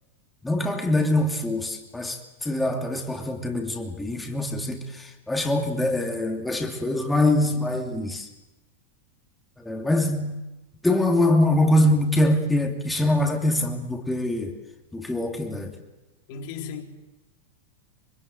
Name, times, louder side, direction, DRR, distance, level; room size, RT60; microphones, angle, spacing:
voice 1, 0.4-8.3 9.6-10.4 10.8-14.6 14.9-15.8, left 1 dB, 5° left, 2.7 m, -24 dB
voice 2, 16.3-16.8, left 6 dB, 45° left, 3.7 m, -35 dB
25.5 x 25.5 x 7.9 m
figure-of-eight pair, 90°, 0 cm